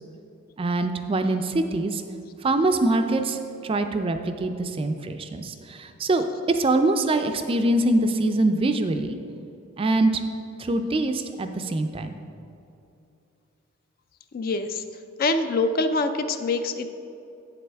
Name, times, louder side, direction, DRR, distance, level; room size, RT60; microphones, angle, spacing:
voice 1, 0.6-2.0 2.4-9.2 9.8-10.2 10.6-12.1, right 2 dB, 25° right, 7 dB, 0.3 m, -24 dB
voice 2, 14.3-14.8 15.2-16.9, left 3 dB, 45° left, 9 dB, 0.4 m, -25 dB
8.6 x 7.5 x 3.4 m, 2.7 s
head